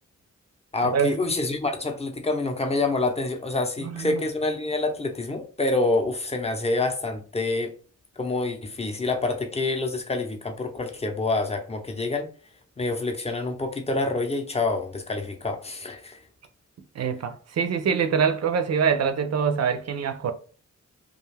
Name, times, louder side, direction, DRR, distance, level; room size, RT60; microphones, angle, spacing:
voice 1, 0.7-7.7 8.2-12.3 12.8-16.2, left 2 dB, 20° left, 0.6 m, -27 dB
voice 2, 3.8-4.2 16.9-20.3, right 6 dB, 60° right, 0.5 m, -24 dB
2.4 x 2.3 x 3.2 m
cardioid pair, 70°, 30 cm